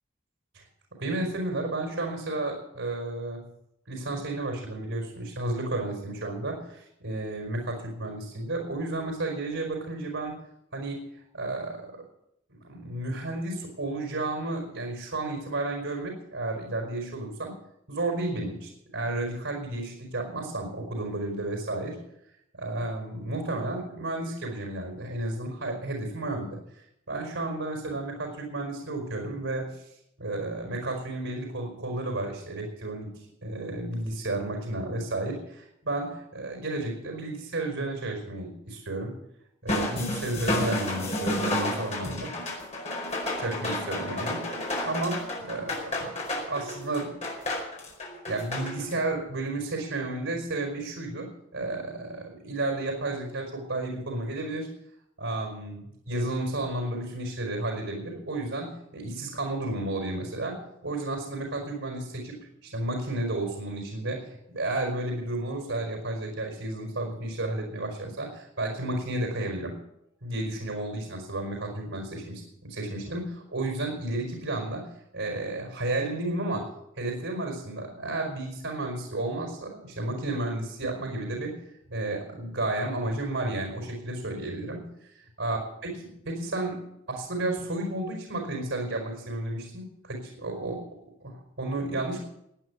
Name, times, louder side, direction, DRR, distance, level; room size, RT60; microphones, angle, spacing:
voice 1, 1.0-3.4 3.9-10.4 10.7-11.0 11.3-12.0 12.5-17.6 17.9-22.0 22.5-26.6 27.1-29.9 30.2-33.1 33.4-39.1 39.6-42.3 43.4-46.1 46.5-47.2 48.3-54.7 55.2-69.8 70.2-74.9 75.1-76.7 77.0-81.6 81.9-84.8 85.1-86.8 87.1-90.8 91.2-92.2, right 2 dB, 80° right, 2 dB, 4.7 m, -32 dB
sound 1, 39.7-49.0, left 1 dB, 35° left, 4.9 m, -31 dB
17.0 x 9.7 x 7.3 m, 0.77 s
head